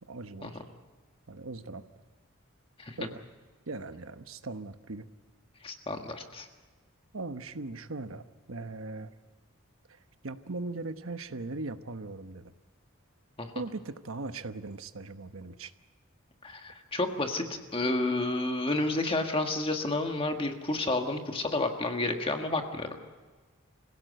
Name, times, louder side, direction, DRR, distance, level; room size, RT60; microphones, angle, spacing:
voice 1, 0.1-0.6 1.3-1.8 3.0-3.2 3.7-5.1 7.1-9.1 10.2-12.5 13.5-15.7, right 3 dB, 80° right, 9 dB, 1.1 m, -39 dB
voice 2, 5.6-6.5 13.4-13.5 16.4-17.4 17.7-22.9, left 2 dB, 25° left, 4 dB, 1.6 m, -30 dB
26.0 x 16.5 x 8.0 m, 1.4 s
head